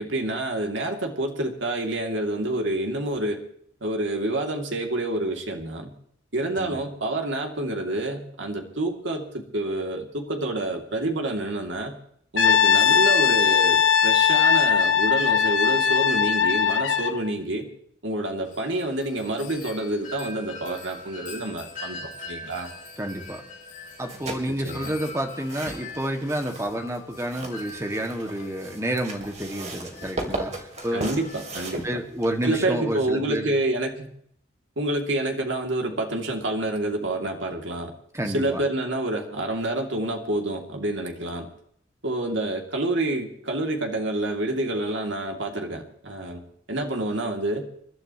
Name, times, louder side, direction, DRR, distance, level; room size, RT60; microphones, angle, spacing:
voice 1, 0.0-3.4 3.8-5.9 6.3-11.9 12.3-17.7 18.0-22.7 24.5-24.9 30.9-31.8 32.4-34.1 34.8-37.9 38.3-41.5 42.0-46.4 46.7-47.6, right 1 dB, 75° right, 2 dB, 2.7 m, -28 dB
Brass instrument, 12.4-17.2, left 7 dB, 80° left, 1.0 m, -20 dB
Wind chime, 18.4-31.9, left 2 dB, 40° left, 2.7 m, -43 dB
voice 2, 23.0-23.4 24.0-30.5 30.8-31.1 31.8-33.5 38.1-38.6, right 1 dB, 15° right, 4 dB, 2.0 m, -29 dB
sound 1, 23.9-32.6, right 2 dB, 35° right, 3.0 m, -37 dB
29.0 x 12.0 x 3.1 m, 0.65 s
head